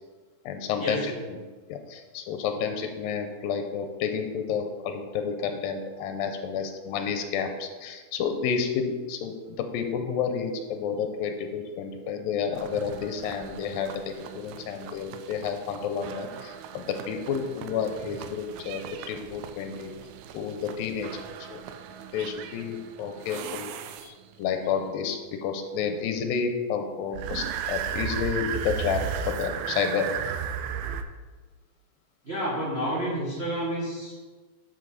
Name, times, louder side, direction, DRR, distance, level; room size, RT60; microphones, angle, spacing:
voice 1, 0.5-1.4 1.7-13.9 14.3-18.8 19.1-19.9 20.3-21.1 21.5-21.6 22.1-23.7 24.0-30.1, left 6 dB, 90° left, 6 dB, 2.4 m, -30 dB
sound 1, 12.5-24.4 27.1-31.0, right 8 dB, 90° right, 2.4 m, -36 dB
voice 2, 32.2-34.1, equal, 35° right, -7 dB, 1.0 m, -29 dB
11.0 x 5.4 x 4.0 m, 1.3 s
omnidirectional pair, 4.1 m